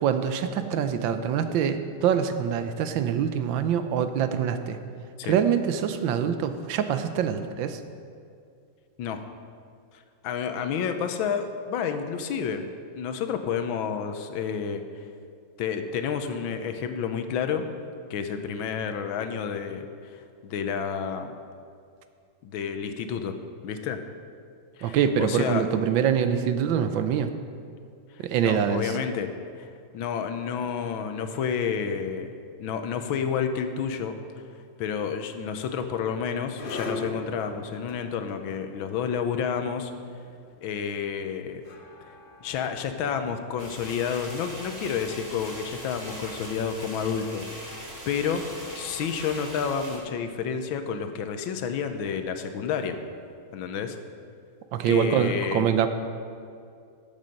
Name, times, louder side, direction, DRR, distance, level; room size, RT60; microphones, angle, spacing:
voice 1, 0.0-4.8 5.2-7.8 24.8-27.3 28.2-28.9 54.7-55.9, right 8 dB, 75° right, 9 dB, 1.4 m, -25 dB
voice 2, 9.9-12.7 12.9-14.8 15.6-17.7 18.1-21.3 22.4-23.4 23.6-24.0 24.8-25.7 28.1-29.3 29.6-32.3 32.6-34.2 34.8-39.9 40.6-41.6 42.4-53.0 53.5-54.0 54.9-55.7, left 7 dB, 85° left, 8 dB, 1.5 m, -30 dB
sound 1, 35.4-46.5, left 3 dB, 65° left, 0.5 m, -42 dB
sound 2, 43.6-50.0, right 1 dB, 10° right, 1.8 m, -40 dB
14.0 x 7.3 x 5.2 m, 2.3 s
omnidirectional pair, 2.2 m